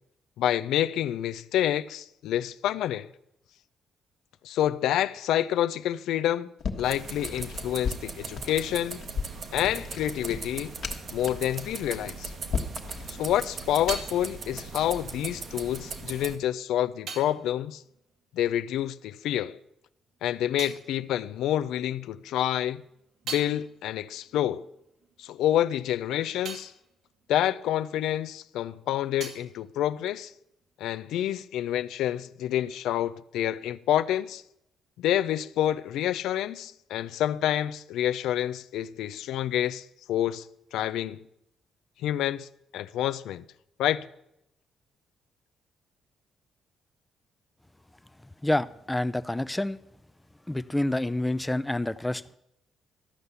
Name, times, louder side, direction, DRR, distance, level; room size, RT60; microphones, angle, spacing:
voice 1, 0.4-3.1 4.4-6.5 6.8-9.0 9.5-10.7 11.1-12.3 13.1-17.8 18.3-19.6 20.2-22.8 23.3-24.7 25.2-26.7 27.3-30.3 30.8-34.4 35.0-40.5 40.7-41.2 42.0-42.5 42.7-43.4 43.8-44.0, left 12 dB, 85° left, 0.4 m, -28 dB
sound 1, 6.6-14.3, left 5 dB, 60° left, 1.3 m, -36 dB
sound 2, 6.8-16.4, right 4 dB, 50° right, 1.2 m, -39 dB
sound 3, 16.8-19.1 19.3-22.0 22.4-28.4 28.7-30.7, right 5 dB, 75° right, 2.0 m, -45 dB
voice 2, 48.4-49.8 50.5-52.4, left 1 dB, 10° left, 0.5 m, -28 dB
13.0 x 5.6 x 8.0 m
cardioid pair, 90°, 0 cm